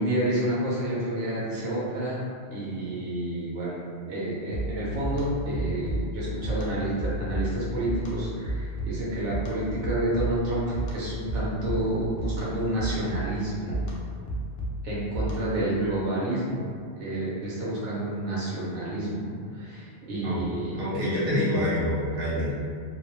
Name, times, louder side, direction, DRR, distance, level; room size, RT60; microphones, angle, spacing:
voice 1, 0.0-2.2 2.5-3.8 4.1-13.8 14.8-16.6 17.0-20.8, right 1 dB, 85° right, -7 dB, 1.0 m, -29 dB
sound 1, 4.5-15.7, equal, 65° left, 0.7 m, -33 dB
voice 2, 20.8-22.5, left 1 dB, 55° right, -8 dB, 0.9 m, -26 dB
2.6 x 2.0 x 2.9 m, 2.2 s
omnidirectional pair, 1.2 m